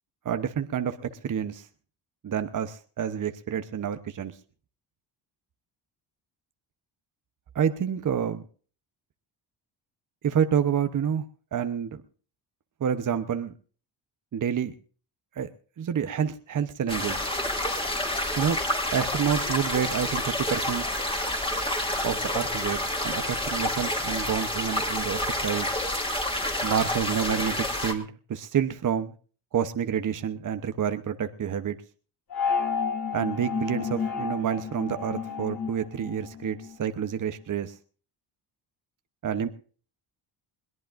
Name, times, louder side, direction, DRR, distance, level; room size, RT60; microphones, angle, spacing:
voice 1, 0.2-1.7 2.2-4.4 7.5-8.4 10.2-11.2 11.5-12.0 12.8-13.5 14.3-14.7 15.4-15.5 15.8-17.2 18.4-18.6 18.9-20.9 22.0-25.7 26.6-29.1 29.5-31.8 33.1-37.8 39.2-39.5, right 8 dB, 45° right, 10 dB, 1.0 m, -28 dB
sound 1, 16.9-27.9, left 1 dB, 10° left, 2.7 m, -29 dB
sound 2, 32.3-36.9, left 6 dB, 50° left, 3.7 m, -31 dB
21.5 x 17.5 x 2.6 m, 0.41 s
cardioid pair, 75°, 45 cm